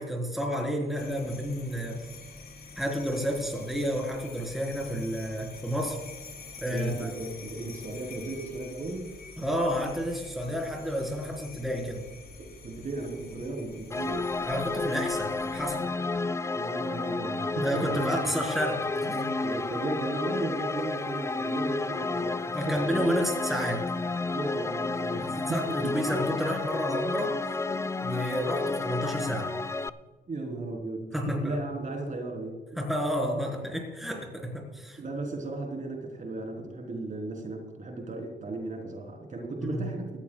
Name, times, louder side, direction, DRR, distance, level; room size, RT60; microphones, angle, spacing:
voice 1, 0.0-2.0 2.8-6.0 6.6-7.1 9.4-12.0 14.5-15.8 17.6-19.3 22.5-23.9 25.2-27.3 28.0-29.5 31.1-31.6 32.8-35.0 39.6-39.8, equal, ahead, 0 dB, 4.1 m, -30 dB
sound 1, 0.9-15.7, left 4 dB, 55° left, 4.9 m, -47 dB
voice 2, 6.7-9.1 12.4-14.2 16.5-18.1 19.4-23.2 24.3-25.9 30.3-32.8 35.0-40.1, right 2 dB, 40° right, 1 dB, 3.8 m, -35 dB
sound 2, 13.9-29.9, left 3 dB, 15° left, 0.4 m, -31 dB
19.0 x 14.5 x 2.4 m, 1.3 s
cardioid pair, 90°, 20 cm